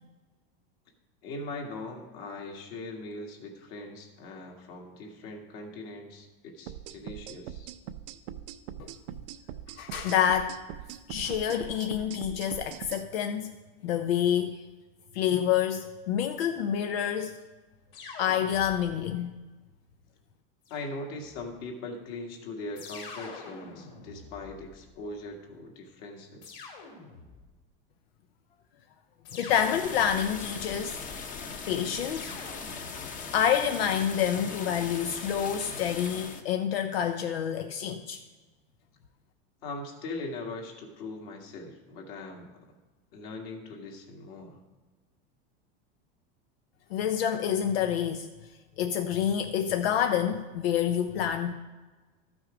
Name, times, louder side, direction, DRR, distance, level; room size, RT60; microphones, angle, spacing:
voice 1, 1.2-7.7 20.7-26.7 39.6-42.5 43.1-44.6, left 2 dB, 55° left, 2 dB, 2.0 m, -40 dB
sound 1, 6.7-13.0, right 10 dB, 75° right, 0.7 m, -42 dB
voice 2, 9.8-10.6 11.1-13.5 13.8-14.6 15.1-17.4 18.2-19.3 29.3-31.0 31.7-32.3 33.3-38.2 46.9-48.3 48.8-51.5, left 9 dB, 90° left, 7 dB, 0.7 m, -28 dB
sound 2, 17.9-19.1 20.6-21.5 22.7-25.1 26.4-27.5 29.2-30.6 32.1-33.3, left 4 dB, 70° left, 2.7 m, -46 dB
sound 3, 29.5-36.4, left 5 dB, 25° left, 0.9 m, -39 dB
12.5 x 6.2 x 5.0 m, 1.3 s
supercardioid pair, 140°, 29 cm